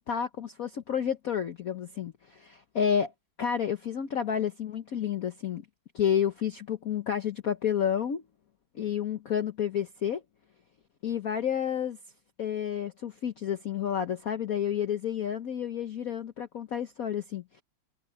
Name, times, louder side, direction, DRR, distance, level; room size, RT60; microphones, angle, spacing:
voice 1, 0.0-3.1 3.4-5.7 5.9-8.2 8.7-10.2 11.0-12.0 12.4-17.6, left 8 dB, 55° left, 1.1 m, -30 dB
open air
omnidirectional pair, 2.4 m